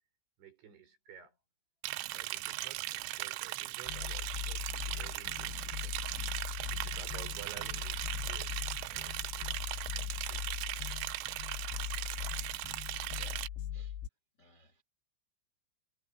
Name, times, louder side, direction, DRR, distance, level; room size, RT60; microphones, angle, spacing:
voice 1, 0.4-1.4 2.1-10.6, right 8 dB, 65° right, 8.0 m, -55 dB
Liquid, 1.8-13.5, right 18 dB, 85° right, 3.0 m, -38 dB
sound 1, 3.9-14.1, left 11 dB, 80° left, 3.7 m, -40 dB
voice 2, 13.1-14.0 14.4-14.8, left 1 dB, 30° left, 2.2 m, -62 dB
omnidirectional pair, 5.9 m